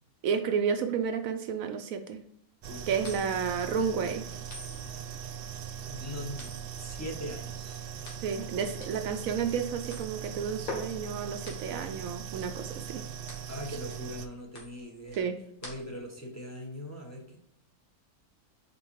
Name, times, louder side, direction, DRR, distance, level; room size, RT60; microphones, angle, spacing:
voice 1, 0.2-2.2 2.9-4.3 8.2-13.0 15.2-15.4, right 6 dB, 70° right, 7 dB, 1.0 m, -31 dB
sound 1, 2.6-14.3, right 8 dB, 90° right, 0.5 m, -40 dB
sound 2, 3.0-16.2, left 3 dB, 75° left, 2.0 m, -47 dB
voice 2, 5.8-7.8 13.5-15.2 15.6-17.4, equal, 10° left, 0 dB, 1.0 m, -41 dB
5.3 x 4.2 x 4.5 m, 0.73 s
omnidirectional pair, 1.5 m